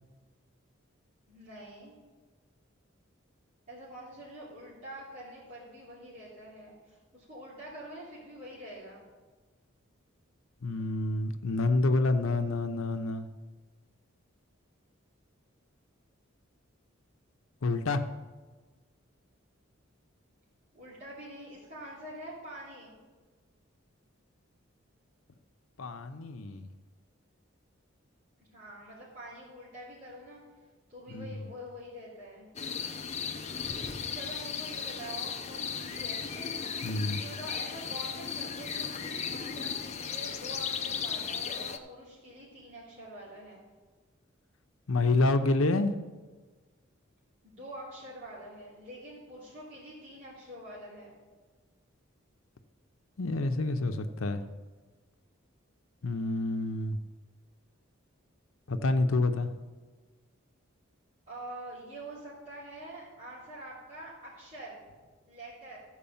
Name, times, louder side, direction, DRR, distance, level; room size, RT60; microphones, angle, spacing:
voice 1, 1.3-2.0 3.7-9.0 20.7-22.9 28.5-30.4 30.9-32.5 33.7-43.6 47.4-51.1 61.3-64.8 65.3-65.8, right 1 dB, 40° right, -11 dB, 3.3 m, -46 dB
voice 2, 10.6-13.3 17.6-18.0 25.8-26.7 31.1-31.2 36.8-37.2 44.9-45.9 53.2-54.4 56.0-57.0 58.7-59.5, left 2 dB, 85° left, 8 dB, 0.7 m, -28 dB
sound 1, 32.6-41.8, left 6 dB, 35° left, 0.6 m, -36 dB
14.0 x 4.7 x 7.1 m, 1.3 s
head